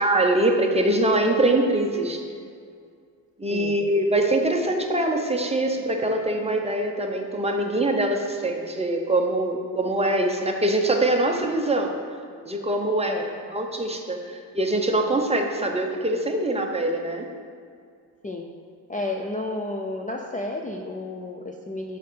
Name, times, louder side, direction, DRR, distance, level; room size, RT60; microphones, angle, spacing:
voice 1, 0.0-2.2 3.4-12.0 12.4-13.2 13.5-17.3, right 1 dB, 15° right, 2 dB, 0.7 m, -23 dB
voice 2, 13.1-13.6 18.2-18.5 18.9-22.0, left 2 dB, 20° left, 2 dB, 0.4 m, -32 dB
8.4 x 5.0 x 6.2 m, 2.2 s
wide cardioid pair, 150°, 41 cm